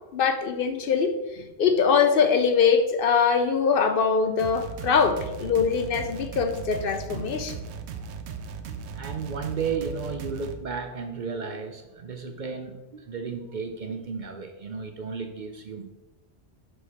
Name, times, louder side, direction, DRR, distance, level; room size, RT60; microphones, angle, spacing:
voice 1, 0.1-7.6, left 6 dB, 65° left, 8 dB, 0.7 m, -23 dB
sound 1, 4.4-10.6, right 6 dB, 85° right, 0.9 m, -37 dB
voice 2, 8.7-15.9, right 5 dB, 55° right, 6 dB, 0.6 m, -34 dB
6.3 x 4.8 x 4.1 m, 1.0 s
omnidirectional pair, 1.1 m